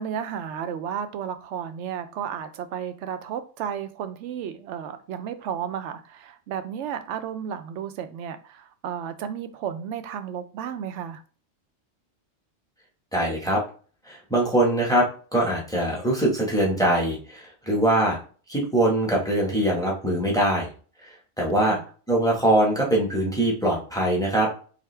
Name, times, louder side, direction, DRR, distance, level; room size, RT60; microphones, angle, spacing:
voice 1, 0.0-11.2 21.6-21.8, right 8 dB, 80° right, 0.9 m, -33 dB
voice 2, 13.1-13.6 14.1-18.2 18.5-20.7 21.4-21.8 22.1-24.5, right 1 dB, 5° left, 1.2 m, -22 dB
4.9 x 2.7 x 3.3 m
omnidirectional pair, 1.2 m